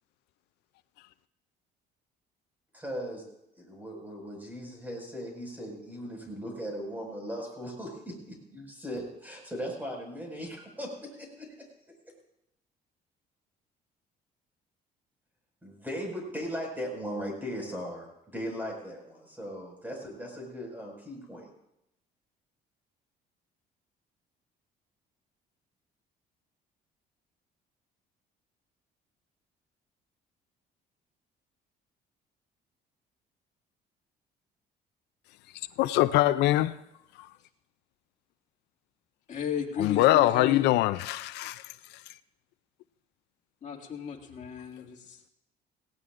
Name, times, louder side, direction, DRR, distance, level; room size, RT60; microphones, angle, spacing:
voice 1, 2.7-3.2 3.6-11.5 15.6-21.5, equal, 10° right, 5.5 m, -38 dB
voice 2, 35.8-36.7 39.8-41.7, left 15 dB, 85° left, 0.4 m, -23 dB
voice 3, 39.3-40.7 43.6-45.2, left 7 dB, 45° left, 2.3 m, -34 dB
18.0 x 17.0 x 2.5 m
cardioid pair, 110°, 17 cm